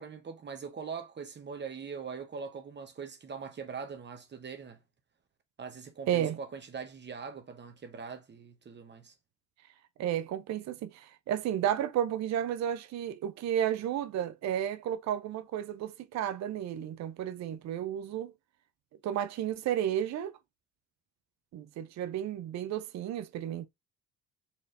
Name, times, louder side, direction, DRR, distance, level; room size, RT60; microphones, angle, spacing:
voice 1, 0.0-4.8 5.6-9.1, right 5 dB, 35° right, 0.8 m, -42 dB
voice 2, 6.1-6.4 10.0-18.3 19.0-20.3 21.5-23.7, right 10 dB, 65° right, 0.5 m, -32 dB
4.3 x 3.0 x 2.5 m
cardioid pair, 90°, 30 cm